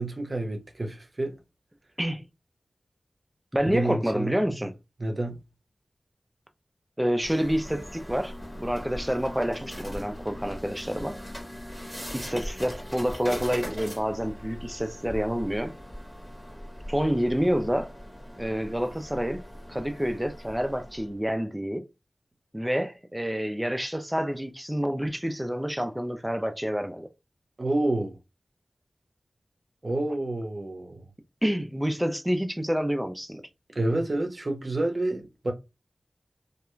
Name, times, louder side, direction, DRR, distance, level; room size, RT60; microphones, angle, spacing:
voice 1, 0.0-1.4 3.6-4.6 5.0-5.4 27.6-28.2 29.8-31.0 33.7-35.5, right 2 dB, 50° right, 0.6 m, -29 dB
voice 2, 3.5-4.7 7.0-11.2 12.1-15.7 16.9-17.9 18.4-19.4 19.7-21.8 22.5-27.1 31.4-33.4, equal, 10° right, 0.4 m, -28 dB
sound 1, 7.2-21.2, equal, 10° left, 1.0 m, -40 dB
sound 2, 8.1-12.6, left 2 dB, 70° left, 1.1 m, -47 dB
2.3 x 2.2 x 3.0 m
wide cardioid pair, 55°, 0 cm